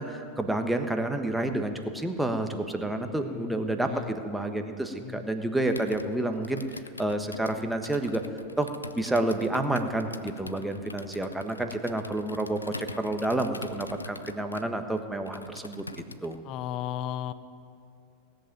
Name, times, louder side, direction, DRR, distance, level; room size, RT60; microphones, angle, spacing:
voice 1, 0.0-6.6 7.0-8.2 8.6-8.7 8.9-15.8 16.2-16.4, right 1 dB, 5° right, 6 dB, 1.3 m, -29 dB
voice 2, 3.2-3.6 3.9-4.2 5.0-5.2 16.4-17.3, left 11 dB, 45° left, 14 dB, 0.7 m, -35 dB
Computer keyboard, 5.6-16.4, left 3 dB, 85° left, 0.5 m, -43 dB
17.5 x 7.8 x 8.9 m, 2.3 s
figure-of-eight pair, 85°, 0 cm